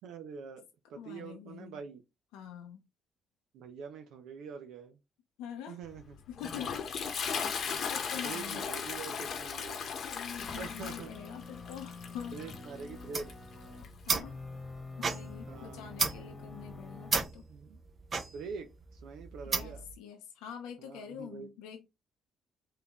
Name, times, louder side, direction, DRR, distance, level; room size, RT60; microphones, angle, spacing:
voice 1, 0.0-0.6 0.9-2.0 3.5-5.0 5.7-6.2 8.2-9.9 10.6-11.1 12.3-13.3 15.5-15.9 17.5-17.8 18.2-19.8 20.8-21.5, right 5 dB, 80° right, 0.5 m, -45 dB
voice 2, 0.9-1.8 2.3-2.8 5.4-5.8 6.3-7.2 7.9-8.7 10.1-12.4 14.0-14.4 15.0-17.5 19.4-21.9, left 8 dB, 85° left, 0.6 m, -45 dB
Toilet flush, 5.9-14.2, left 6 dB, 60° left, 0.8 m, -38 dB
sound 1, 10.4-13.9 14.2-17.2, left 3 dB, 25° left, 1.2 m, -46 dB
sound 2, 13.0-19.9, right 4 dB, 45° right, 0.7 m, -35 dB
3.8 x 2.7 x 2.9 m
supercardioid pair, 65°, 0 cm